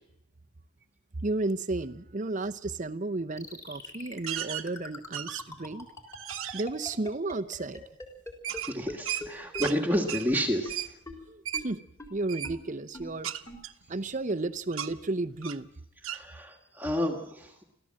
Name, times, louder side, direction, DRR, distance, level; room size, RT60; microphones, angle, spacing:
voice 1, 1.2-5.9 6.5-7.8 11.3-11.8 12.1-13.3 13.9-15.7, right 2 dB, 35° right, 0.7 m, -33 dB
sound 1, 3.4-8.6 8.9-9.0 9.2-9.3 9.5-9.6 9.9-10.0 10.3-10.4 10.7-10.8 11.1-11.2 11.5-11.6 12.0-12.1 12.4-12.5 12.9-13.0 13.5-13.6, left 2 dB, 15° left, 4.0 m, -41 dB
sound 2, 4.3-4.7 5.1-5.6 6.1-6.7 8.4-9.8 10.1-10.3 10.7-10.9 11.5-11.7 12.3-12.5 13.2-14.4 14.7-14.9 15.4-15.7 16.0-16.2, right 10 dB, 70° right, 1.1 m, -35 dB
voice 2, 8.6-10.8 16.1-17.6, equal, 10° right, 1.7 m, -30 dB
25.5 x 15.0 x 7.6 m
head